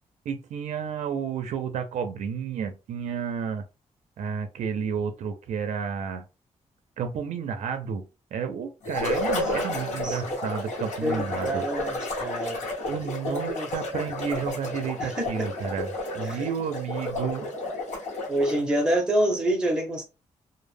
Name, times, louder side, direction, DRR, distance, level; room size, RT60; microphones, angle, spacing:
voice 1, 0.3-3.6 4.2-6.2 7.0-11.6 12.8-17.5, right 7 dB, 80° right, 0.4 m, -31 dB
sound 1, 8.8-18.7, left 2 dB, 90° left, 0.9 m, -31 dB
voice 2, 9.3-10.3 11.0-12.6 13.2-13.7 15.0-15.5 16.2-16.5 18.3-20.1, right 1 dB, 5° right, 0.6 m, -27 dB
2.1 x 2.0 x 3.2 m
wide cardioid pair, 150°, 12 cm